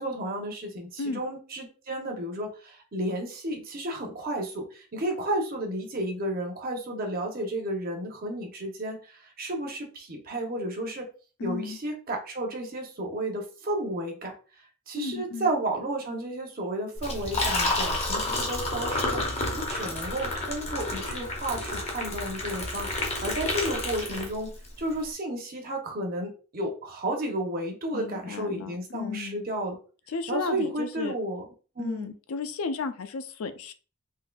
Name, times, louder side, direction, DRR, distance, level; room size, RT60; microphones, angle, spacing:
voice 1, 0.0-11.1 11.4-14.3 14.9-29.8 30.3-31.4 31.8-32.1, right 1 dB, 40° right, 2 dB, 0.7 m, -32 dB
voice 2, 11.4-11.8 15.0-15.5 27.9-29.4 30.1-31.2 31.8-33.7, left 4 dB, 70° left, 10 dB, 0.4 m, -34 dB
Liquid, 17.0-24.7, left 2 dB, 30° left, 0.7 m, -30 dB
3.7 x 2.6 x 2.2 m, 0.37 s
head